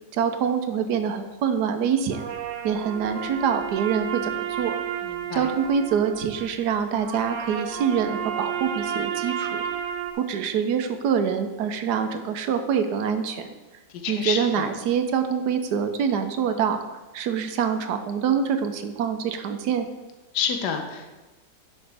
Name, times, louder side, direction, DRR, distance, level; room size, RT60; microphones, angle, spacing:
voice 1, 0.1-2.3 2.6-4.8 5.3-9.6 10.2-13.5 14.1-16.8 17.1-19.9, right 7 dB, 70° right, 8 dB, 1.2 m, -25 dB
sound 1, 2.1-10.1, right 9 dB, 90° right, 1.4 m, -32 dB
voice 2, 5.0-5.5 13.9-14.7 20.3-21.2, left 7 dB, 75° left, 5 dB, 1.4 m, -29 dB
10.5 x 5.9 x 3.4 m, 1.1 s
omnidirectional pair, 1.9 m